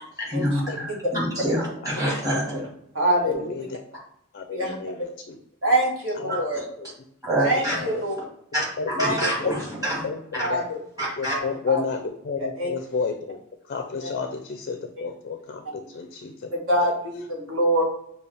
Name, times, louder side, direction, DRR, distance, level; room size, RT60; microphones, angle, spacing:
voice 1, 0.0-2.6 6.3-6.4 7.2-7.8 8.5-10.0 10.3-10.5 11.0-11.4, right 1 dB, 15° right, -4 dB, 1.8 m, -26 dB
voice 2, 1.5-2.4 3.3-3.7 4.3-5.4 6.2-6.4 6.8-6.9 7.7-8.0 8.8-9.6 10.0-10.7 11.2-13.4 13.7-16.5, left 5 dB, 45° left, 5 dB, 0.4 m, -31 dB
voice 3, 2.9-3.4 4.5-4.7 5.6-6.6 7.4-8.1 9.0-9.2 10.5-10.8 11.3-11.8 12.4-12.7 14.0-14.1 15.0-15.1 15.8-15.9 16.7-17.8, right 1 dB, 60° right, -2 dB, 1.5 m, -25 dB
6.8 x 2.3 x 3.3 m, 0.74 s
head